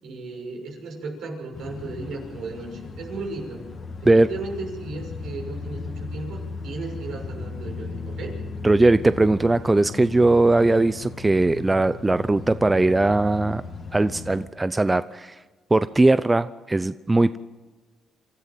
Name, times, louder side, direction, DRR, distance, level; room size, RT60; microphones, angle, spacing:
voice 1, 0.0-3.6 4.0-8.4, right 3 dB, 75° right, 1 dB, 6.5 m, -35 dB
sound 1, 1.5-14.5, left 4 dB, 50° left, 2.5 m, -36 dB
voice 2, 8.6-13.6 13.9-15.4 15.7-17.4, right 2 dB, 20° right, 13 dB, 0.6 m, -19 dB
26.5 x 14.0 x 7.6 m, 1.3 s
cardioid pair, 90°, 0 cm